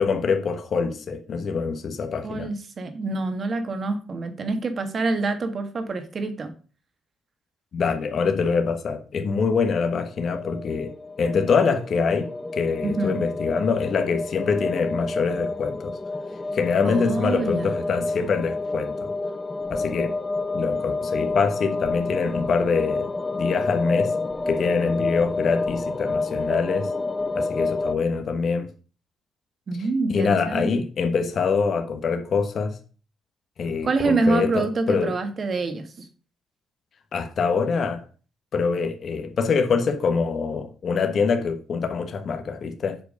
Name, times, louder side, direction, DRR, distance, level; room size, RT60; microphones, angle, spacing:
voice 1, 0.0-2.5 7.7-15.9 16.5-19.1 19.7-20.2 20.5-23.1 23.4-24.1 24.5-26.9 27.3-28.7 30.1-32.8 33.6-35.1 37.1-38.0 38.5-43.0, left 5 dB, 55° left, 1.2 m, -24 dB
voice 2, 2.2-6.5 12.8-13.2 16.8-17.7 29.7-30.7 33.8-35.9, right 3 dB, 45° right, 1.7 m, -26 dB
sound 1, 10.2-27.9, left 3 dB, 20° left, 0.7 m, -29 dB
7.8 x 4.6 x 6.5 m
cardioid pair, 90°, 0 cm